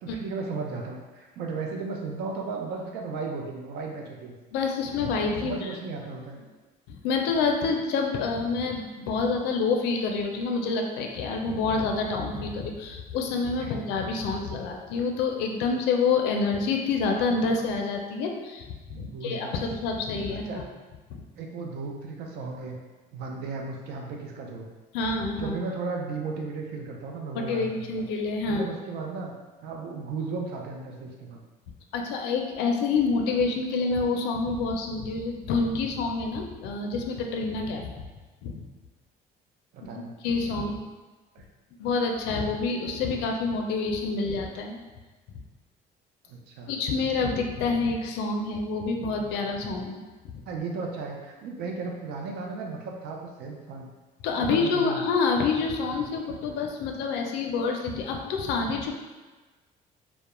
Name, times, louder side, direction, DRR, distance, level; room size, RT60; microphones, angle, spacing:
voice 1, 0.0-4.4 5.4-6.4 13.6-13.7 18.9-19.5 20.3-20.6 21.4-22.8 23.1-24.7 25.4-28.1 28.4-29.3 29.6-31.4 39.7-40.1 41.3-41.4 46.3-46.7 50.5-53.9 54.4-55.0, right 4 dB, 75° right, 1 dB, 0.5 m, -35 dB
voice 2, 4.5-5.5 6.9-20.6 21.1-21.2 24.9-25.5 27.3-28.7 31.9-38.0 38.4-38.7 40.2-40.8 41.8-44.8 46.7-50.0 50.3-50.4 54.2-58.9, left 4 dB, 85° left, 2 dB, 0.4 m, -27 dB
2.2 x 2.0 x 2.9 m, 1.3 s
cardioid pair, 110°, 17 cm